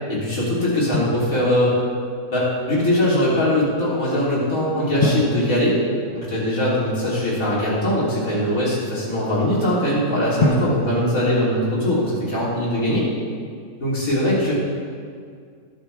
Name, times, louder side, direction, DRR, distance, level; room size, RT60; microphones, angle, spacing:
voice 1, 0.1-1.7 2.3-5.8 6.1-13.1 13.8-14.5, left 1 dB, 60° left, -7 dB, 3.9 m, -21 dB
Drum, 0.9-2.0 5.0-6.8 10.4-12.4, left 1 dB, 30° left, 0.9 m, -27 dB
17.5 x 8.3 x 3.5 m, 2.1 s
omnidirectional pair, 1.6 m